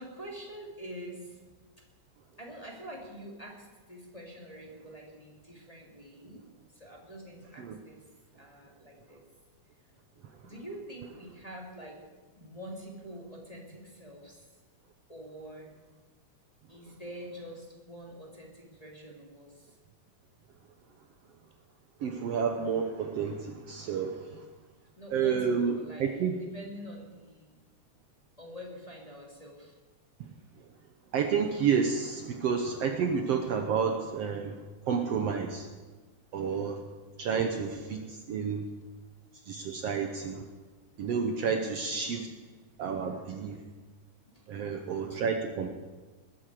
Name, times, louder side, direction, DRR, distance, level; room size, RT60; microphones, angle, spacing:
voice 1, 0.0-1.4 2.4-8.0 8.4-9.2 10.4-12.0 12.4-14.6 15.1-15.7 16.7-19.8 25.0-26.1 26.4-27.6 28.4-29.8 37.7-37.8 41.3-41.7 42.0-42.1 42.7-42.8 44.2-44.5 45.1-45.2, equal, 15° left, -2 dB, 2.4 m, -46 dB
voice 2, 22.0-24.5 25.1-25.7 26.0-26.4 30.2-30.3 31.1-35.7 36.3-36.8 37.2-38.6 39.4-40.4 41.0-42.3 42.8-43.6 44.5-45.7, right 6 dB, 65° right, 4 dB, 1.8 m, -30 dB
20.0 x 14.0 x 4.9 m, 1.3 s
omnidirectional pair, 3.5 m